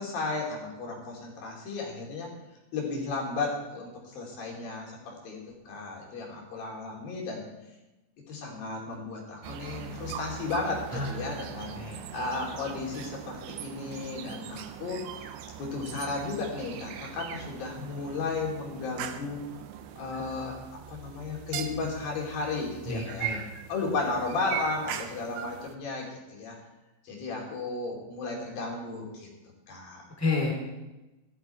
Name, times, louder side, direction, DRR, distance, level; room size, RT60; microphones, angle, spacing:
voice 1, 0.0-2.3 2.7-5.4 5.7-7.4 8.3-15.0 15.6-19.4 20.0-23.3 23.7-26.6 27.0-29.3 29.7-30.0, left 3 dB, 50° left, -1 dB, 4.4 m, -34 dB
sound 1, 9.4-25.7, right 10 dB, 80° right, 2.9 m, -40 dB
voice 2, 10.9-11.3 11.7-12.0 22.9-23.4 30.2-30.5, left 3 dB, 5° left, 0 dB, 1.8 m, -30 dB
17.0 x 13.5 x 4.5 m, 1.0 s
omnidirectional pair, 5.7 m